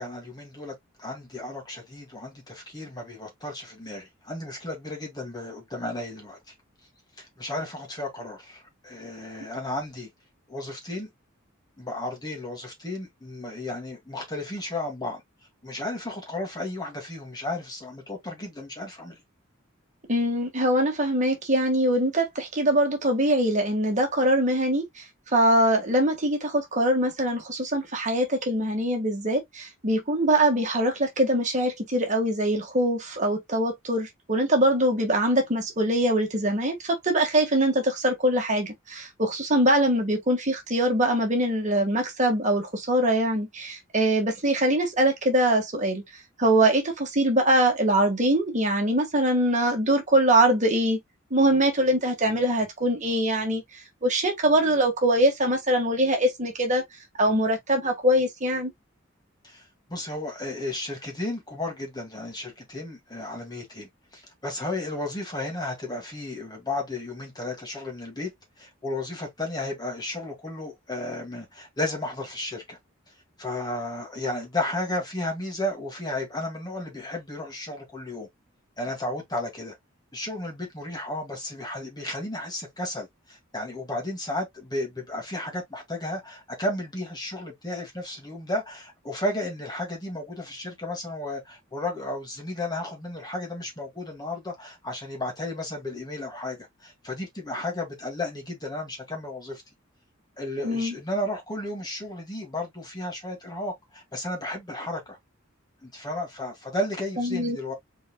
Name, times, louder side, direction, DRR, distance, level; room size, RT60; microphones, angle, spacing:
voice 1, 0.0-6.4 7.2-10.1 10.5-11.1 11.8-15.2 15.6-19.2 59.4-68.3 68.6-72.8 73.4-78.3 78.8-79.8 80.1-99.6 100.4-105.2 105.8-107.7, left 1 dB, 20° left, 2.2 m, -33 dB
voice 2, 20.1-24.9 25.3-46.0 46.4-51.0 51.3-53.6 54.0-56.8 57.2-58.7 100.6-100.9 107.2-107.6, right 1 dB, 40° right, 1.6 m, -23 dB
5.1 x 4.3 x 2.3 m
head